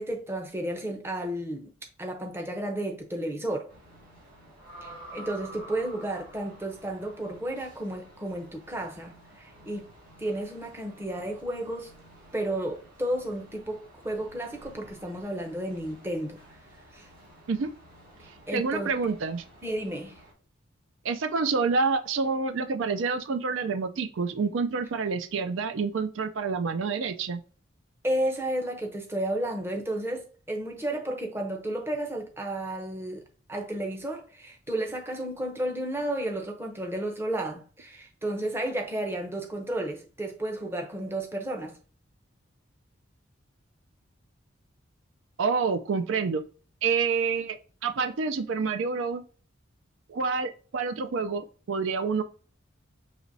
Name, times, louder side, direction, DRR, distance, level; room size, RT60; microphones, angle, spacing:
voice 1, 0.0-1.7 2.0-3.7 4.8-9.9 10.2-11.9 12.3-16.4 16.9-17.1 18.5-18.9 19.6-20.2 28.0-33.2 33.5-41.8, right 1 dB, 10° right, 0.6 m, -32 dB
sound 1, 3.7-20.3, right 1 dB, 45° right, 2.1 m, -51 dB
voice 2, 18.5-19.4 21.0-27.4 45.4-46.4 46.8-47.6 47.8-49.2 50.1-52.2, right 5 dB, 75° right, 0.4 m, -28 dB
6.5 x 3.0 x 2.6 m
head